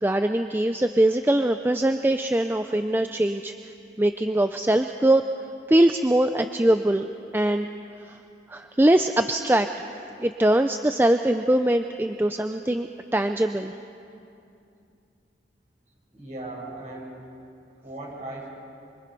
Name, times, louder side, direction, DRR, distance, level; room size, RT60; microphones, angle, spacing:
voice 1, 0.0-3.5 4.0-5.2 5.7-7.1 7.3-7.7 8.1-8.2 8.5-9.7 10.2-13.7, right 1 dB, 10° right, 7 dB, 0.4 m, -22 dB
voice 2, 16.1-17.2 17.8-18.5, right 2 dB, 40° right, -5 dB, 7.7 m, -37 dB
25.5 x 24.5 x 5.3 m, 2.6 s
head